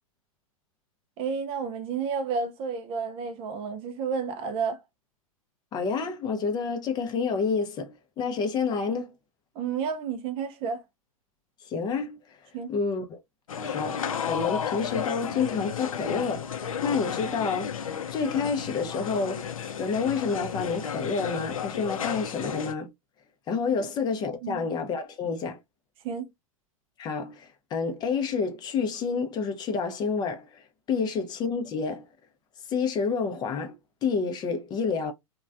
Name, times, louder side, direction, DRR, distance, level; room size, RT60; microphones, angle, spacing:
voice 1, 1.2-4.8 9.6-10.8 12.5-12.7 23.8-23.9 24.4-24.7 26.0-26.3, right 6 dB, 30° right, 0.4 m, -31 dB
voice 2, 5.7-9.1 11.6-12.4 12.7-13.2 13.6-17.8 18.1-19.5 19.8-22.9 23.5-25.6 27.0-32.1 32.7-35.1, left 5 dB, 25° left, 0.5 m, -29 dB
sound 1, 13.5-22.7, left 7 dB, 70° left, 0.5 m, -33 dB
3.0 x 2.2 x 2.4 m
figure-of-eight pair, 100°, 18 cm